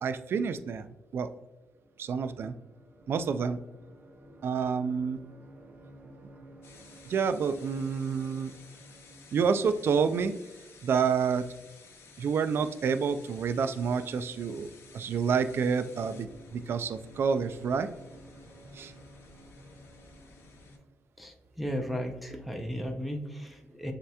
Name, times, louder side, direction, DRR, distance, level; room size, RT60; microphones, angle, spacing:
voice 1, 0.0-0.9 1.1-1.3 2.0-2.6 3.1-3.6 4.4-5.2 7.1-8.5 9.3-10.3 10.8-11.5 12.2-14.7 14.9-17.9 18.8-18.9, right 6 dB, 60° right, 11 dB, 0.3 m, -28 dB
sound 1, 1.4-20.8, right 1 dB, 30° right, 0.8 m, -55 dB
sound 2, 6.6-20.8, left 4 dB, 70° left, 0.8 m, -55 dB
voice 2, 21.2-23.9, equal, ahead, 3 dB, 0.6 m, -35 dB
7.3 x 2.9 x 2.2 m, 1.0 s
cardioid pair, 85°, 5 cm